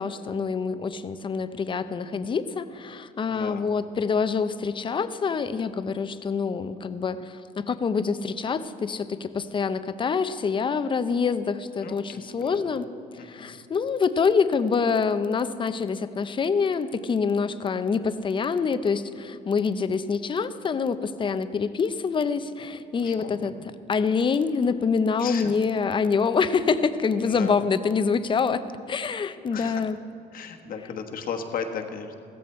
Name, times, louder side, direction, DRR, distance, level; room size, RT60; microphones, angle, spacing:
voice 1, 0.0-12.9 13.1-23.5 23.9-28.6 28.9-30.0, left 5 dB, 30° left, 12 dB, 0.7 m, -26 dB
voice 2, 3.3-3.7 11.8-12.7 13.2-13.6 23.0-23.6 25.2-25.5 27.2-27.5 29.5-29.8 30.3-32.2, left 6 dB, 55° left, 4 dB, 1.3 m, -36 dB
15.5 x 14.0 x 4.4 m, 2.6 s
cardioid pair, 110°, 17 cm